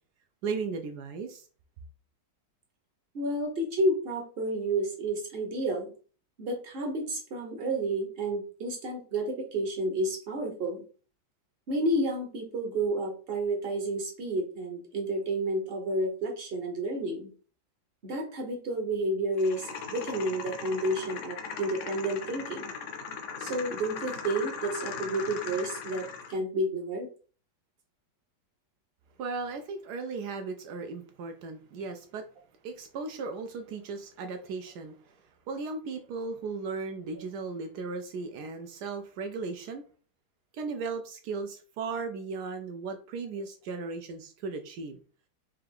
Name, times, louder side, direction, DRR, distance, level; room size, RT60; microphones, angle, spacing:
voice 1, 0.4-1.5 29.2-32.2 32.6-35.2 35.5-39.8 40.5-45.0, right 4 dB, 75° right, 6 dB, 1.1 m, -36 dB
voice 2, 3.1-5.9 6.4-10.8 11.7-17.3 18.0-22.7 23.4-27.1, right 1 dB, 45° right, 2 dB, 0.9 m, -30 dB
sound 1, 19.4-26.4, left 6 dB, 65° left, 0.7 m, -39 dB
4.4 x 2.4 x 3.4 m, 0.39 s
omnidirectional pair, 1.9 m